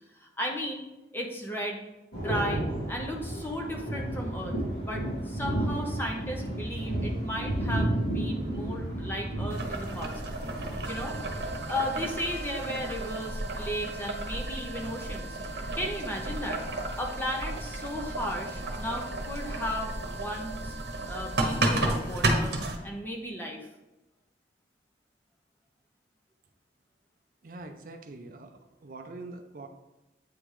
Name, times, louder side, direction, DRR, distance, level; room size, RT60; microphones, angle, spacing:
voice 1, 0.1-0.8 1.1-1.8 2.1-4.5 4.8-10.2 10.9-11.1 11.7-15.4 15.7-16.6 17.0-20.8 21.1-22.5 22.8-23.7, equal, 10° left, 0 dB, 0.9 m, -35 dB
sound 1, 2.1-12.1, right 1 dB, 65° left, 2.4 m, -32 dB
Boiling, 9.5-22.8, right 2 dB, 70° right, 1.1 m, -33 dB
sound 2, 10.8-22.3, right 4 dB, 90° right, 0.9 m, -46 dB
voice 2, 27.4-29.7, right 2 dB, 50° right, 5 dB, 0.5 m, -44 dB
8.6 x 3.4 x 4.9 m, 1.0 s
head